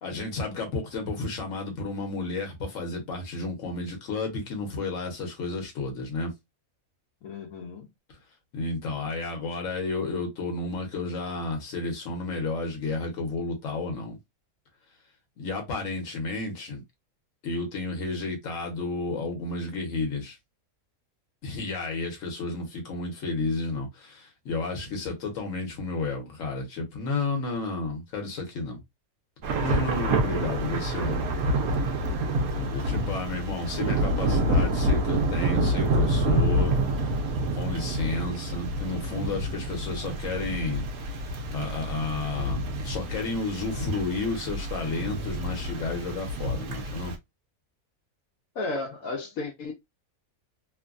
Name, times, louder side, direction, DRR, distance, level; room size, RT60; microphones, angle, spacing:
voice 1, 0.0-6.3 8.5-14.2 15.4-16.8 17.4-20.4 21.4-28.8 29.6-31.2 32.3-36.9 37.5-40.8 41.5-47.1, left 3 dB, 65° left, 1.3 m, -32 dB
voice 2, 7.2-7.9 48.6-49.7, left 3 dB, 80° left, 1.1 m, -34 dB
Thunder / Rain, 29.4-47.1, right 1 dB, 90° right, 1.1 m, -28 dB
3.1 x 2.2 x 2.4 m
omnidirectional pair, 1.5 m